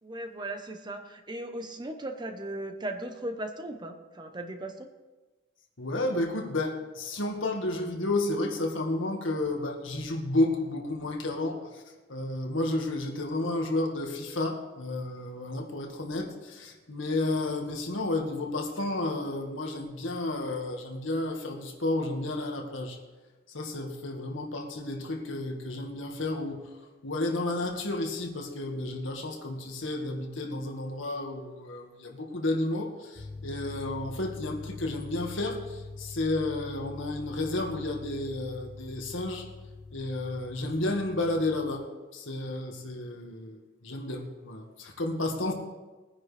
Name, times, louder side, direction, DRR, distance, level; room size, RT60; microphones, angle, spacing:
voice 1, 0.0-4.9, right 1 dB, 20° right, 6 dB, 0.9 m, -37 dB
voice 2, 5.8-11.8 12.1-23.0 23.5-26.6 27.0-39.5 39.9-41.9 42.1-45.5, left 2 dB, 85° left, 2 dB, 1.8 m, -31 dB
sound 1, 33.1-41.8, left 3 dB, 55° left, 1.2 m, -44 dB
20.5 x 9.9 x 3.4 m, 1.2 s
head